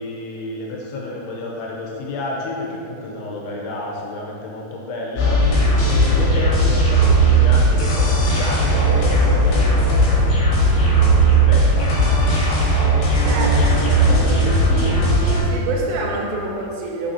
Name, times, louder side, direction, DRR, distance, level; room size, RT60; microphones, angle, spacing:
voice 1, 0.0-5.3 5.9-10.2 10.8-11.9 13.2-15.0, left 1 dB, 80° left, -2 dB, 2.7 m, -30 dB
sound 1, 5.2-15.4, right 1 dB, 65° left, 2.4 m, -16 dB
voice 2, 13.2-13.6 15.4-17.1, right 3 dB, 85° right, -2 dB, 2.9 m, -26 dB
6.4 x 5.9 x 2.7 m, 2.7 s
omnidirectional pair, 4.9 m